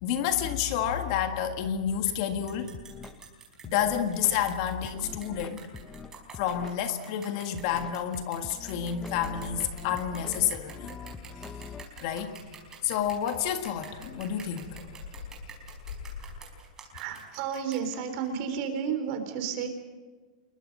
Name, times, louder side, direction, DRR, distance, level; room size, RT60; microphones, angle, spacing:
voice 1, 0.0-2.8 3.6-5.7 6.4-10.9 12.0-12.4 12.8-14.8, left 9 dB, 45° left, 7 dB, 1.7 m, -29 dB
sound 1, 1.9-2.0 2.4-2.5 2.7-3.2 3.6-4.3 4.8-6.8 7.2-7.3 7.5-11.8, left 5 dB, 10° left, 0.9 m, -44 dB
sound 2, 2.1-2.2 2.5-18.3, right 5 dB, 10° right, 4.9 m, -48 dB
Bird vocalization bird call bird song, 9.1-16.4, left 6 dB, 80° left, 3.8 m, -46 dB
voice 2, 16.9-19.7, right 7 dB, 40° right, 7 dB, 3.8 m, -32 dB
28.0 x 22.0 x 5.4 m, 1.3 s
supercardioid pair, 160°, 4 cm